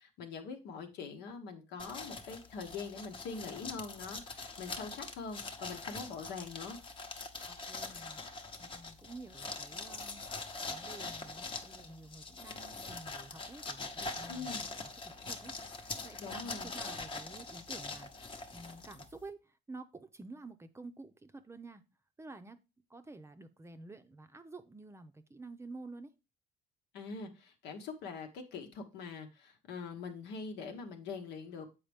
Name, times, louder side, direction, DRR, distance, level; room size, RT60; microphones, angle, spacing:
voice 1, 0.0-6.8 14.3-14.6 16.2-16.7 26.9-31.7, left 5 dB, 85° left, 1.2 m, -43 dB
sound 1, 1.8-19.3, left 3 dB, 30° left, 0.9 m, -43 dB
voice 2, 7.5-21.8 22.2-22.6 22.9-26.1, right 3 dB, 15° right, 0.6 m, -50 dB
7.3 x 4.8 x 3.4 m
cardioid pair, 110°, 17 cm